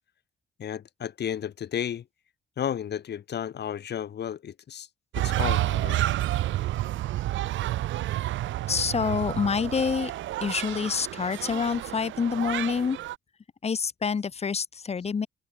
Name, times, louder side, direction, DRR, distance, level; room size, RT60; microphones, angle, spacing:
voice 1, 0.6-2.0 2.6-4.9 5.2-6.0, left 9 dB, 60° left, 2.7 m, -33 dB
sound 1, 5.1-13.2, right 14 dB, 70° right, 0.6 m, -30 dB
voice 2, 8.7-10.1 10.4-13.0 13.6-15.3, left 5 dB, 30° left, 1.0 m, -27 dB
cardioid pair, 90°, 20 cm